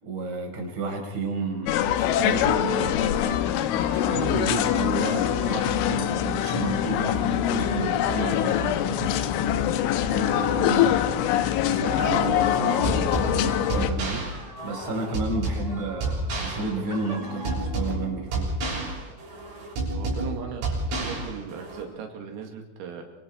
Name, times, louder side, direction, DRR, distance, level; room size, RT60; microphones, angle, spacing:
voice 1, 0.0-3.4 3.9-9.2 10.1-10.9 11.7-18.5, right 3 dB, 25° right, 1 dB, 5.4 m, -32 dB
sound 1, 1.7-13.9, left 10 dB, 75° left, 3.4 m, -24 dB
sound 2, 3.2-9.4 9.7-18.7, right 1 dB, 10° right, 2.4 m, -43 dB
sound 3, 12.8-21.8, right 2 dB, 65° right, 9.2 m, -30 dB
voice 2, 19.9-23.0, right 6 dB, 80° right, 3 dB, 4.9 m, -38 dB
28.0 x 25.5 x 4.6 m, 0.96 s
omnidirectional pair, 6.0 m